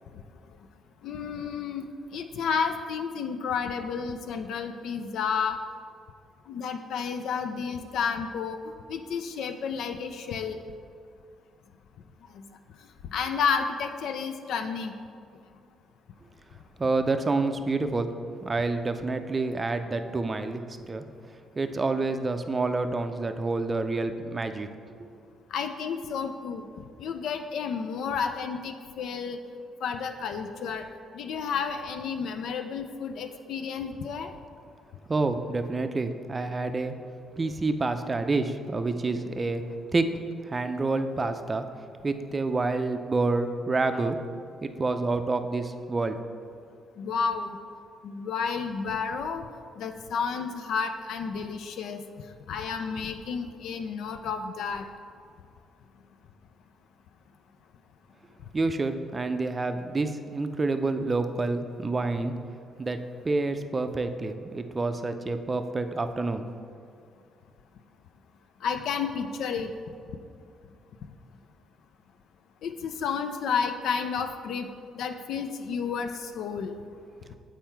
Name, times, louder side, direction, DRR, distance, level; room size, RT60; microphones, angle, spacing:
voice 1, 1.0-1.8 2.1-5.6 6.5-8.6 8.9-10.6 13.1-14.9 25.5-26.6 27.0-29.4 29.8-30.9 31.1-34.3 47.0-47.6 48.0-49.5 49.8-52.0 52.5-54.9 68.6-69.7 72.6-74.7 75.0-76.7, left 6 dB, 75° left, 7 dB, 0.4 m, -31 dB
voice 2, 16.8-18.1 18.4-21.0 21.6-24.7 35.1-37.0 37.4-39.6 39.9-40.1 40.5-41.7 42.0-44.2 44.6-46.2 58.5-62.3 62.8-63.0 63.2-66.5, right 3 dB, 30° right, 8 dB, 0.4 m, -28 dB
7.4 x 4.4 x 4.5 m, 2.3 s
cardioid pair, 90°, 0 cm